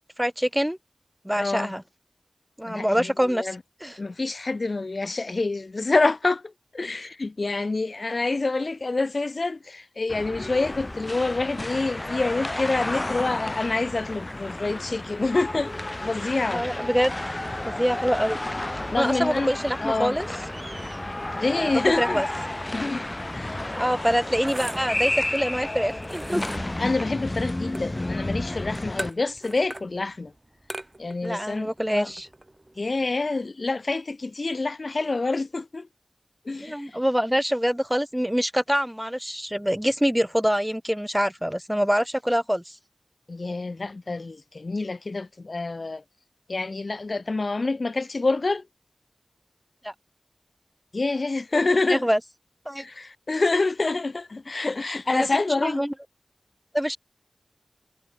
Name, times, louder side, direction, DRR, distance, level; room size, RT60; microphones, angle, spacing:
voice 1, 0.2-0.8 1.2-1.8 2.6-3.5 3.8-4.0 16.5-17.1 17.7-18.4 19.0-20.3 21.6-21.7 22.0-22.3 23.8-26.4 31.2-32.3 36.6-42.8 49.8-49.9 51.9-52.2 52.7-52.8 55.1-55.3 55.6-55.9 56.7-57.0, equal, 5° right, 0.7 m, -25 dB
voice 2, 1.4-1.8 2.6-3.6 4.0-15.7 16.0-16.6 18.9-19.5 19.8-20.2 21.3-22.2 22.7-23.0 23.3-23.7 26.8-30.3 31.0-32.1 32.8-35.9 36.5-36.9 43.3-46.0 46.5-48.6 50.9-52.0 52.8-55.8, left 3 dB, 55° left, 0.7 m, -27 dB
sound 1, 10.1-29.1, left 1 dB, 30° left, 1.0 m, -32 dB
sound 2, 16.6-25.9, right 3 dB, 55° right, 1.3 m, -46 dB
sound 3, 24.3-33.1, right 1 dB, 25° right, 4.7 m, -42 dB
wide cardioid pair, 65°, 0 cm